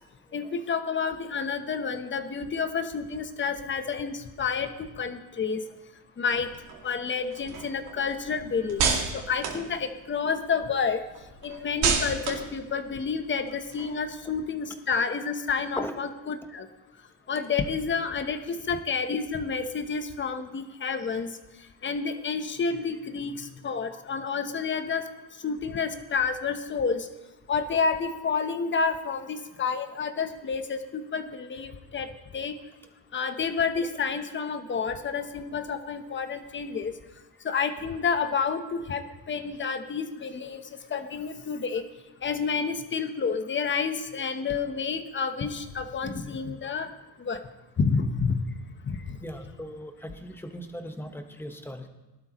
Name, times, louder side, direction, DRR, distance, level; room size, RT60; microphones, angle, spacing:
voice 1, 0.3-5.6 6.2-6.5 6.8-11.0 11.4-16.7 17.3-21.4 21.8-25.1 25.4-27.1 27.5-32.5 33.1-36.9 37.4-41.8 42.2-46.9 47.2-47.4 47.8-48.5 48.8-49.2, left 5 dB, 30° left, 9 dB, 1.1 m, -29 dB
sound 1, 6.3-10.5 10.8-14.3, right 6 dB, 75° right, 2.5 m, -32 dB
voice 2, 49.2-51.9, equal, 5° left, 5 dB, 1.3 m, -38 dB
18.5 x 12.0 x 3.1 m, 1.1 s
cardioid pair, 115°, 39 cm